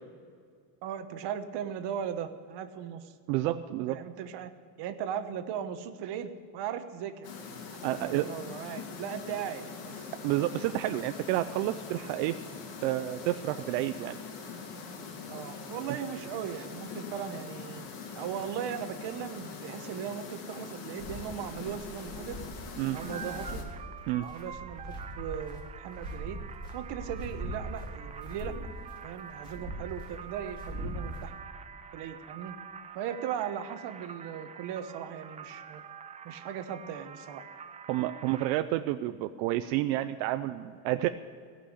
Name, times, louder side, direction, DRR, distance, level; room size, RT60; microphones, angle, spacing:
voice 1, 0.8-3.2 3.4-4.5 4.8-7.3 7.9-10.1 15.3-17.9 18.1-22.4 22.8-23.6 24.2-26.4 26.7-28.6 29.0-31.3 31.9-32.5 32.9-35.8 36.2-37.4, right 9 dB, 55° right, 8 dB, 1.3 m, -38 dB
voice 2, 3.3-4.0 7.8-8.3 10.2-12.4 12.8-14.2 22.8-23.0 24.1-24.3 37.9-41.1, right 15 dB, 85° right, 9 dB, 0.7 m, -30 dB
sound 1, 7.2-23.6, left 5 dB, 85° left, 2.8 m, -43 dB
sound 2, 21.0-31.2, right 1 dB, 10° left, 3.6 m, -41 dB
sound 3, 23.0-38.5, right 7 dB, 15° right, 0.3 m, -46 dB
17.5 x 6.1 x 9.7 m, 2.2 s
cardioid pair, 135°, 49 cm